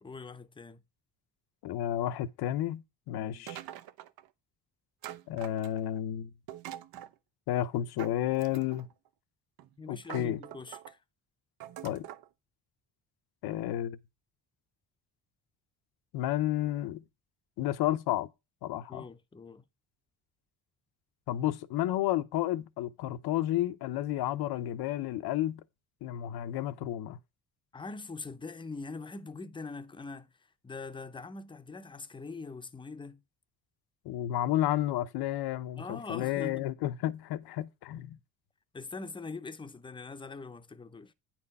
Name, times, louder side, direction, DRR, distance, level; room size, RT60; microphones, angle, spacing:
voice 1, 0.0-0.8 3.2-3.5 9.8-11.0 18.9-19.7 27.7-30.3 30.6-33.2 35.8-36.7 38.7-41.1, left 4 dB, 15° left, 0.6 m, -43 dB
voice 2, 1.6-3.6 5.3-6.3 7.5-8.9 9.9-10.4 11.8-12.1 13.4-14.0 16.1-17.0 17.6-18.3 18.6-19.0 21.3-25.6 26.0-27.2 34.0-38.2, left 13 dB, 85° left, 0.9 m, -31 dB
sound 1, 3.5-4.3 5.0-6.0 6.5-7.1 8.0-8.9 9.6-9.7 10.0-10.9 11.6-12.3, right 12 dB, 70° right, 0.8 m, -44 dB
9.6 x 4.5 x 5.4 m
cardioid pair, 135°, 37 cm